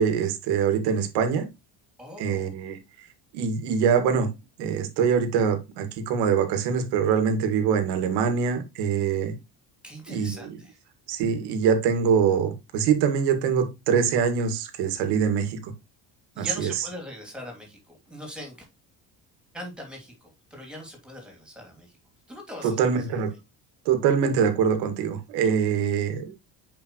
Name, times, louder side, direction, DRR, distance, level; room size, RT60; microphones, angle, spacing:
voice 1, 0.0-1.5 2.2-2.8 3.3-4.3 4.6-9.3 10.1-10.6 11.1-15.7 16.4-16.7 22.6-23.3 23.9-26.5, right 7 dB, 90° right, 2.1 m, -24 dB
voice 2, 2.0-2.5 9.8-10.8 16.3-18.7 19.5-21.9 22.3-23.2, left 1 dB, ahead, 2.9 m, -41 dB
8.8 x 5.2 x 3.1 m
cardioid pair, 165°, 39 cm